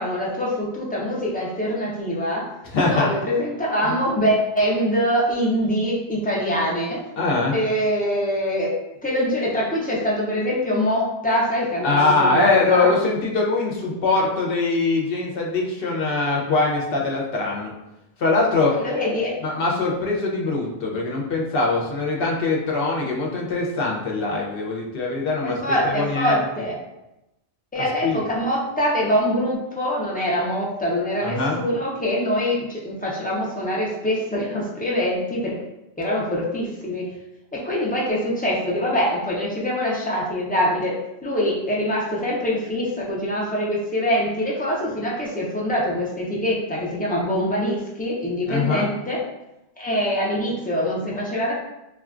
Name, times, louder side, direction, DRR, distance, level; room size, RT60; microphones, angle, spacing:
voice 1, 0.0-2.5 2.9-7.0 7.5-8.7 9.0-12.9 18.7-19.4 25.4-26.8 27.7-35.6 36.0-37.1 37.5-40.9 41.2-49.2 49.8-51.5, equal, 15° left, -5 dB, 0.3 m, -24 dB
voice 2, 2.7-3.1 7.2-7.5 11.8-17.7 18.2-18.8 19.4-25.6 25.8-26.4 28.0-28.2 31.2-31.6 48.5-48.9, left 3 dB, 60° left, -2 dB, 0.9 m, -22 dB
3.6 x 2.3 x 2.4 m, 0.91 s
omnidirectional pair, 1.1 m